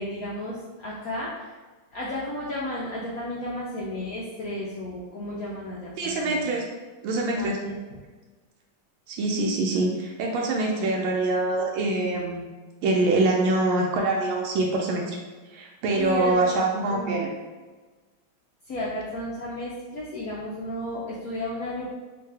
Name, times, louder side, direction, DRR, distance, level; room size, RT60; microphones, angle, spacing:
voice 1, 0.0-1.5 1.9-6.5 7.4-7.8 16.0-16.5 16.8-17.2 18.7-21.9, left 1 dB, 85° left, -6 dB, 0.8 m, -33 dB
voice 2, 6.0-6.7 7.0-7.6 9.1-12.4 12.8-15.2 15.5-17.3, right 2 dB, 80° right, -1 dB, 1.4 m, -24 dB
3.6 x 2.6 x 3.3 m, 1.3 s
omnidirectional pair, 2.3 m